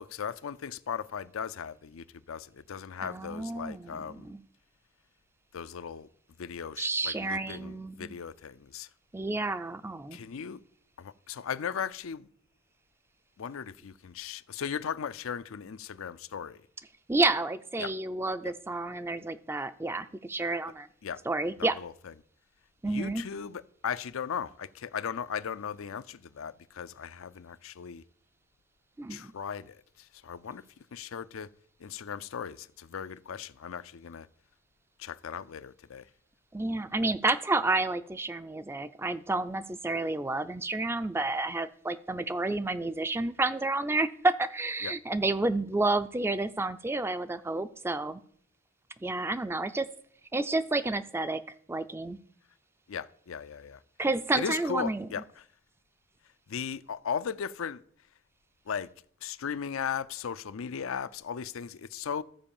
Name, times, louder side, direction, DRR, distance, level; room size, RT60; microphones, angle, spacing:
voice 1, 0.0-4.3 5.5-6.1 6.4-8.9 10.1-10.6 11.0-12.3 13.4-16.6 17.8-17.9 18.4-18.5 21.0-21.2 21.6-21.9 22.8-28.0 29.1-30.6 30.9-31.5 31.8-34.3 35.0-36.1 44.8-44.9 52.9-53.8 54.3-55.4 56.5-57.8 58.7-58.9 59.2-62.2, left 7 dB, 85° left, 0.5 m, -37 dB
voice 2, 3.0-4.4 6.8-8.1 9.1-10.2 17.1-20.9 21.3-21.8 22.8-23.2 29.0-29.3 36.5-48.2 49.0-49.9 50.3-51.4 51.7-52.2 54.0-55.1, right 2 dB, 10° right, 0.4 m, -30 dB
14.0 x 4.8 x 7.1 m
head